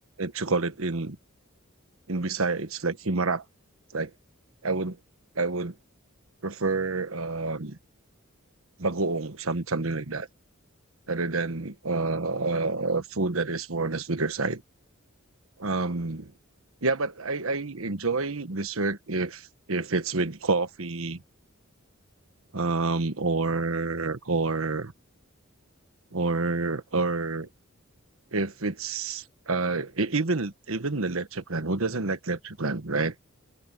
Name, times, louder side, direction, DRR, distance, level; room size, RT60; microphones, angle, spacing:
voice 1, 0.2-1.2 2.1-3.4 3.9-4.1 4.6-5.0 5.3-5.7 6.4-7.8 8.8-10.3 11.1-14.6 15.6-16.3 16.8-21.2 22.5-24.9 26.1-27.5 28.3-33.1, right 3 dB, 75° right, 1.3 m, -28 dB
open air
head